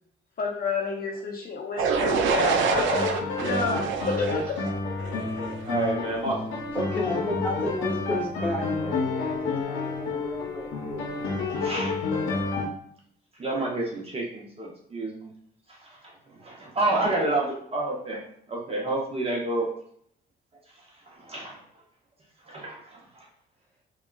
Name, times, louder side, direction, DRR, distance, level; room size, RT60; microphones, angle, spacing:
voice 1, 0.4-3.1 3.4-4.5, left 4 dB, 45° left, 0 dB, 0.6 m, -30 dB
sound 1, 1.8-5.7, right 5 dB, 75° right, 0.4 m, -27 dB
sound 2, 2.7-12.7, left 4 dB, 85° left, 0.6 m, -30 dB
voice 2, 5.6-6.7 11.6-12.0 13.4-15.3 15.7-19.7 21.1-21.6 22.5-23.2, right 2 dB, 30° right, -2 dB, 0.7 m, -29 dB
voice 3, 6.7-11.1, left 1 dB, 10° left, -4 dB, 1.3 m, -33 dB
3.4 x 2.2 x 2.3 m, 0.67 s
cardioid pair, 90°, 20 cm